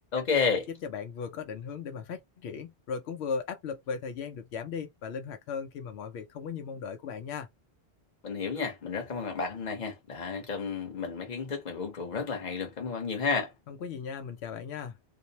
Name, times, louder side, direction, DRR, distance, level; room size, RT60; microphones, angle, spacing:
voice 1, 0.1-0.7 8.2-13.5, left 5 dB, 45° left, 1.0 m, -31 dB
voice 2, 0.8-7.5 13.7-15.0, left 6 dB, 85° left, 0.8 m, -37 dB
2.6 x 2.0 x 2.7 m
omnidirectional pair, 1.1 m